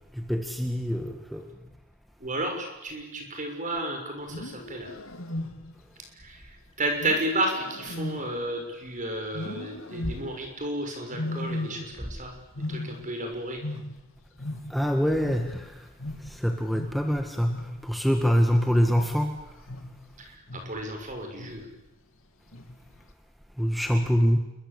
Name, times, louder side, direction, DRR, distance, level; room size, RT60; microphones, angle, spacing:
voice 1, 0.1-1.4 14.7-15.9 16.2-19.4 23.6-24.4, equal, ahead, 4 dB, 1.7 m, -25 dB
voice 2, 2.2-4.9 6.2-13.6 20.2-21.7, right 1 dB, 40° right, 4 dB, 6.4 m, -32 dB
Wild animals, 4.2-5.9 7.0-8.9 9.3-10.5 11.1-12.2 12.4-14.9 15.2-20.1 20.5-20.9 21.4-21.8 22.5-23.0, left 1 dB, 75° left, 2.9 m, -37 dB
28.5 x 23.0 x 8.5 m, 0.97 s
head